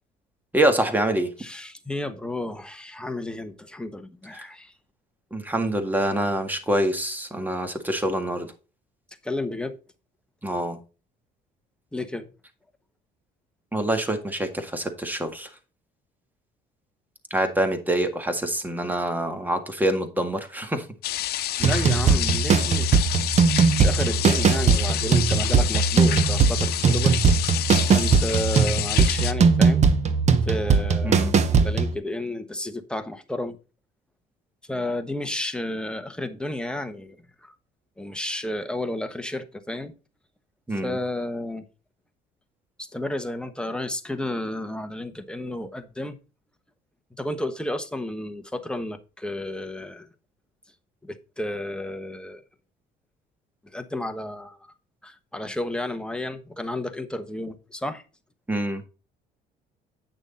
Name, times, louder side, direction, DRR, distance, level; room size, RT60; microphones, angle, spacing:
voice 1, 0.5-1.3 4.3-4.5 5.3-8.5 10.4-10.8 13.7-15.5 17.3-20.9 21.6-22.0 31.0-31.3 40.7-41.0 58.5-58.8, right 1 dB, 10° right, 1.8 m, -25 dB
voice 2, 1.4-4.7 9.2-9.8 11.9-12.3 21.6-23.1 23.8-27.1 27.9-29.9 30.4-33.6 34.7-37.2 37.4-37.5 38.0-39.9 40.8-41.6 42.8-46.2 47.2-50.1 51.0-52.4 53.7-54.6 55.0-58.0, left 1 dB, 5° left, 1.2 m, -32 dB
sound 1, 21.0-29.3, left 13 dB, 70° left, 0.8 m, -28 dB
sound 2, 21.6-31.9, right 5 dB, 40° right, 1.1 m, -20 dB
9.0 x 6.3 x 3.9 m
cardioid pair, 110°, 17 cm